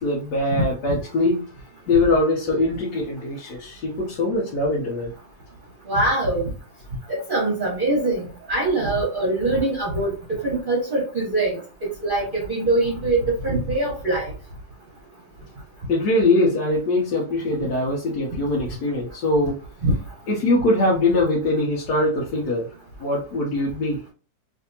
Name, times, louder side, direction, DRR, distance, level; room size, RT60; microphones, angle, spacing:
voice 1, 0.0-1.4 1.9-5.1 15.9-19.6 20.3-22.7 23.0-24.0, left 2 dB, 65° left, 1.3 m, -22 dB
voice 2, 5.9-6.4 7.1-10.2 10.4-14.3 19.8-19.9, right 2 dB, 40° right, 0.8 m, -23 dB
3.3 x 2.6 x 2.7 m
omnidirectional pair, 1.9 m